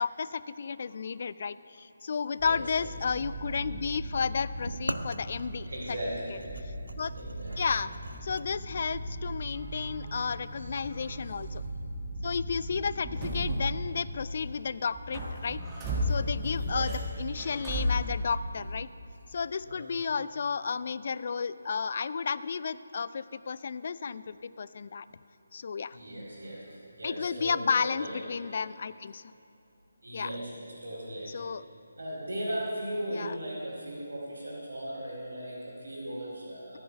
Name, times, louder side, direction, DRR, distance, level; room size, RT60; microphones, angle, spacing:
voice 1, 0.0-5.7 7.0-7.1 7.6-7.9 8.2-11.6 12.2-15.6 16.1-18.9 19.3-25.1 25.5-26.0 27.0-29.2 30.1-30.3 31.3-31.6 33.1-33.3, left 5 dB, 45° left, 16 dB, 0.3 m, -32 dB
sound 1, 2.4-14.5 14.9-18.8, equal, 15° right, 1.6 m, -36 dB
sound 2, 4.7-8.5, right 1 dB, 85° right, 0.5 m, -40 dB
voice 2, 5.6-6.5 6.8-7.7 9.5-11.1 16.1-16.9 18.9-19.0 19.6-20.0 25.5-28.2 30.0-31.5 32.0-36.8, right 1 dB, 65° right, -8 dB, 2.9 m, -39 dB
13.5 x 9.2 x 5.6 m, 2.6 s
figure-of-eight pair, 150°, 0 cm